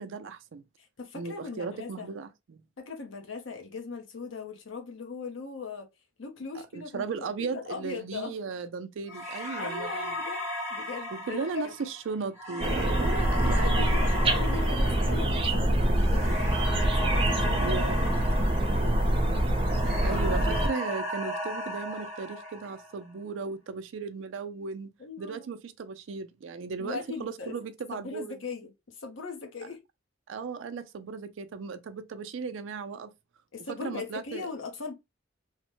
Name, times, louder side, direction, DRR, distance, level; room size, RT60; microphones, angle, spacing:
voice 1, 0.0-0.6 1.1-2.6 6.5-10.1 11.1-14.0 17.6-18.1 20.0-24.9 25.2-28.3 30.3-33.1 33.8-34.5, right 5 dB, 75° right, 0.4 m, -36 dB
voice 2, 0.8-2.1 2.8-5.9 6.2-8.4 9.6-10.4 10.7-11.7 13.6-16.4 16.9-18.1 25.0-25.5 26.8-27.6 27.9-29.8 33.5-34.9, left 4 dB, 80° left, 0.8 m, -39 dB
sound 1, 9.1-19.3 19.6-23.0, equal, 15° right, 1.1 m, -36 dB
sound 2, 12.6-20.7, right 1 dB, 30° right, 0.6 m, -25 dB
3.1 x 2.1 x 3.0 m
head